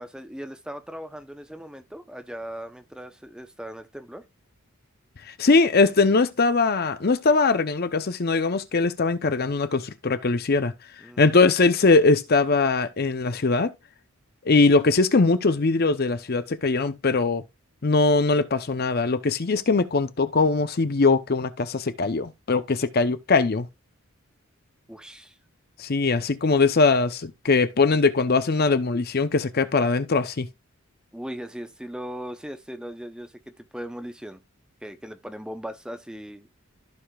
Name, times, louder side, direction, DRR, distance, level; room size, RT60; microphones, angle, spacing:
voice 1, 0.0-4.2 11.0-11.2 24.9-25.4 31.1-34.4 34.8-36.5, equal, 5° right, 0.7 m, -38 dB
voice 2, 5.3-10.7 11.2-13.7 14.4-17.4 17.8-23.7 25.8-30.5, left 3 dB, 45° left, 0.6 m, -21 dB
15.0 x 4.9 x 2.3 m
head